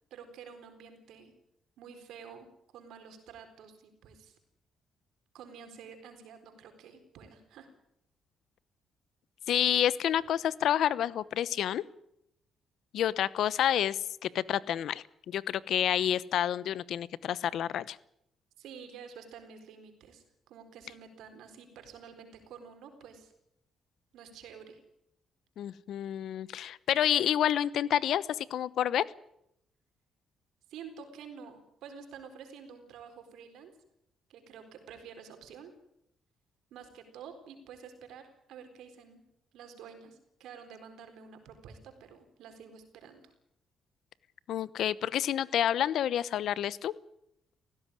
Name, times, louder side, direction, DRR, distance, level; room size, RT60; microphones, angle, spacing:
voice 1, 0.1-1.3 1.8-2.5 2.7-4.4 5.3-7.7 18.6-23.3 24.1-24.8 30.7-33.7 34.3-35.7 36.7-39.2 39.5-43.3, right 6 dB, 85° right, 7 dB, 4.1 m, -49 dB
voice 2, 9.5-11.8 12.9-18.0 25.6-29.0 44.5-46.9, left 10 dB, 75° left, 19 dB, 0.9 m, -29 dB
18.0 x 16.0 x 9.9 m, 0.77 s
cardioid pair, 90°, 0 cm